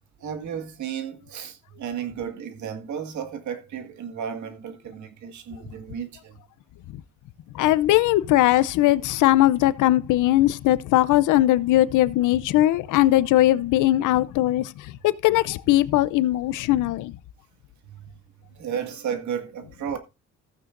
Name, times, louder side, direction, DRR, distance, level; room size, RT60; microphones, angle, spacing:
voice 1, 0.2-6.4 17.9-18.1 18.6-20.0, right 8 dB, 70° right, 2.0 m, -33 dB
voice 2, 7.5-17.2, left 15 dB, 85° left, 0.6 m, -20 dB
15.0 x 8.8 x 2.6 m
cardioid pair, 90°, 30 cm